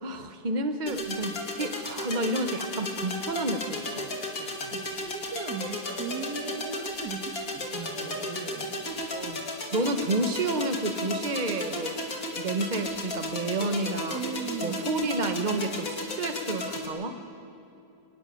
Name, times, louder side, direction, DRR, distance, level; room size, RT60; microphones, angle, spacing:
voice 1, 0.0-4.1 4.4-4.7 9.1-9.4 9.7-12.0 12.3-14.2 14.6-17.2, right 2 dB, 30° right, 7 dB, 1.2 m, -30 dB
sound 1, 0.9-16.9, left 1 dB, 55° left, 2.9 m, -34 dB
voice 2, 4.7-8.8 14.1-14.8, right 5 dB, 80° right, 5 dB, 2.2 m, -38 dB
24.5 x 15.5 x 10.0 m, 2.8 s
omnidirectional pair, 1.8 m